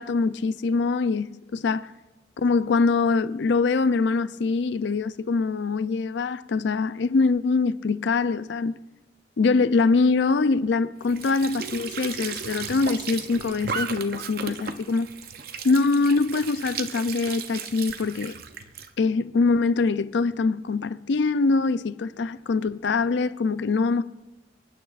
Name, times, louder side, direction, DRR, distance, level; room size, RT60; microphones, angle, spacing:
voice 1, 0.0-1.9 2.4-8.7 9.4-15.1 15.6-18.3 19.0-24.0, left 4 dB, 70° left, 0.4 m, -23 dB
Squeak / Sink (filling or washing) / Trickle dribble, 11.0-18.9, right 6 dB, 50° right, 0.6 m, -35 dB
26.5 x 9.5 x 2.4 m
head